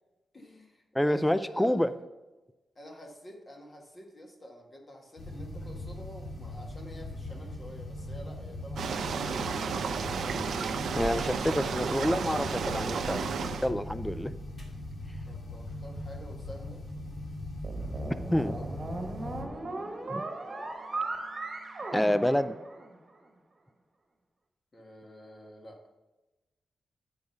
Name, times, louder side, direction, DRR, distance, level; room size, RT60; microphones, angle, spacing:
voice 1, 0.3-1.8 2.7-9.9 15.2-16.8 17.7-18.7 19.2-19.7 24.7-25.8, equal, 35° left, 1 dB, 1.6 m, -49 dB
voice 2, 0.9-1.9 10.9-13.2 13.6-14.3 18.3-18.5 20.1-20.2 21.9-22.6, left 1 dB, 5° left, 13 dB, 0.3 m, -27 dB
sound 1, 5.2-19.4, left 1 dB, 55° left, 2.1 m, -40 dB
sound 2, 8.8-13.7, right 5 dB, 85° right, 0.6 m, -32 dB
sound 3, 17.6-23.1, right 2 dB, 35° right, 1.3 m, -37 dB
9.3 x 4.8 x 5.4 m, 1.1 s
cardioid pair, 90°, 0 cm